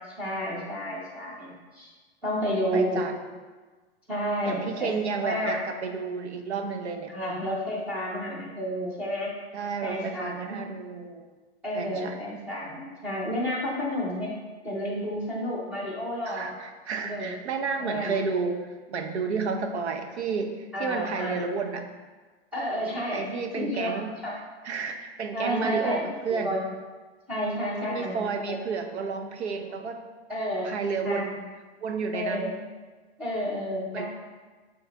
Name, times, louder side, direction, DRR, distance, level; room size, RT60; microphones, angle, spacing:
voice 1, 0.1-1.9 2.2-3.1 4.1-4.9 5.2-5.6 7.1-9.3 9.8-10.6 11.6-14.3 14.6-16.6 17.0-17.3 17.8-18.1 20.7-21.4 22.5-24.3 25.3-26.7 27.3-28.2 30.3-30.7 31.0-31.4 32.1-32.5 33.2-34.1, equal, 5° right, -7 dB, 0.7 m, -31 dB
voice 2, 2.4-3.2 4.4-7.1 9.5-11.3 11.7-12.2 16.2-21.9 23.1-24.2 24.6-26.5 27.8-30.0 30.6-31.4 31.8-32.6 33.9-34.1, right 5 dB, 85° right, 5 dB, 0.9 m, -31 dB
7.8 x 3.5 x 3.5 m, 1.3 s
hypercardioid pair, 175°, 33 cm